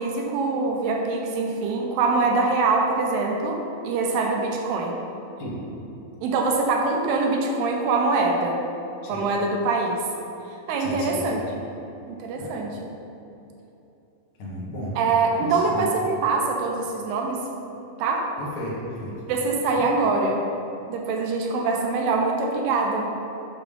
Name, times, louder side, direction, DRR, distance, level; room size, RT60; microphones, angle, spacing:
voice 1, 0.0-5.0 6.2-8.6 9.1-10.0 10.7-11.4 12.1-12.9 15.0-17.5 18.0-18.3 19.3-20.4 20.9-23.1, right 3 dB, 90° right, 1 dB, 2.9 m, -24 dB
voice 2, 10.8-11.4 12.4-12.5 14.4-14.9 15.3-15.9 18.4-19.1 19.7-19.8, equal, 55° left, -6 dB, 2.4 m, -34 dB
8.7 x 6.4 x 3.4 m, 2.9 s
omnidirectional pair, 4.4 m